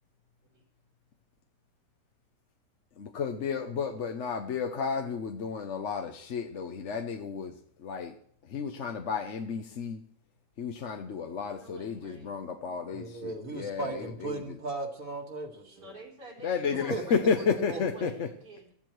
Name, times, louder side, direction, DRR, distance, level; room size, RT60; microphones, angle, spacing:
voice 1, 3.0-7.5 7.8-8.1 8.5-10.0 10.6-14.4 16.4-18.3, left 6 dB, 50° left, 1.0 m, -32 dB
voice 2, 11.5-12.5 15.7-18.7, right 2 dB, 75° right, 4.6 m, -48 dB
voice 3, 12.9-15.9 16.7-17.0 17.7-18.1, right 2 dB, 50° right, 2.4 m, -37 dB
15.0 x 14.5 x 4.6 m
omnidirectional pair, 1.8 m